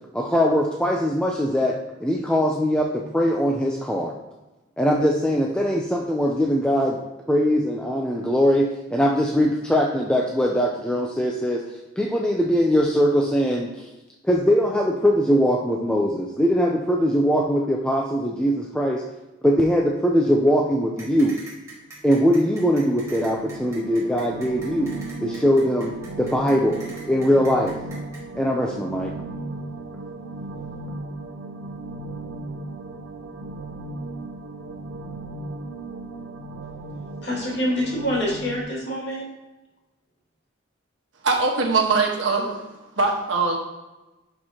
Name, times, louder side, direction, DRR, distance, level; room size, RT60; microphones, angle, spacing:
voice 1, 0.1-4.2 4.8-7.0 7.3-11.6 12.0-13.8 14.2-19.0 19.4-21.4 22.0-24.9 25.2-26.8 27.1-27.8 28.3-29.1, equal, 5° left, -1 dB, 0.5 m, -21 dB
sound 1, 21.0-28.2, right 2 dB, 15° right, 2.0 m, -43 dB
sound 2, 22.4-38.6, right 2 dB, 90° right, 0.7 m, -36 dB
voice 2, 37.2-39.3, equal, 60° left, -4 dB, 2.5 m, -26 dB
voice 3, 41.2-42.6 43.0-43.6, right 4 dB, 75° right, 1 dB, 1.4 m, -21 dB
11.0 x 4.5 x 2.9 m, 1.1 s
head